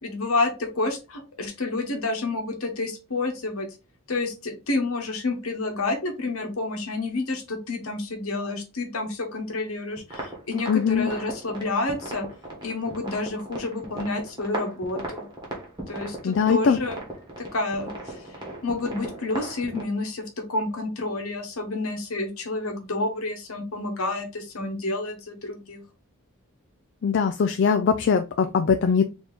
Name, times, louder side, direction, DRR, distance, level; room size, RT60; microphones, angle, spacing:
voice 1, 0.0-3.7 4.1-12.3 12.6-15.3 15.9-17.0 17.4-18.2 18.6-20.2 20.5-25.8, left 2 dB, 75° left, 4 dB, 1.2 m, -29 dB
sound 1, 10.0-19.8, right 1 dB, 20° right, 1.3 m, -37 dB
voice 2, 10.7-11.1 16.2-16.8 27.0-29.0, left 6 dB, 55° left, 7 dB, 0.3 m, -21 dB
4.3 x 2.9 x 3.6 m, 0.30 s
head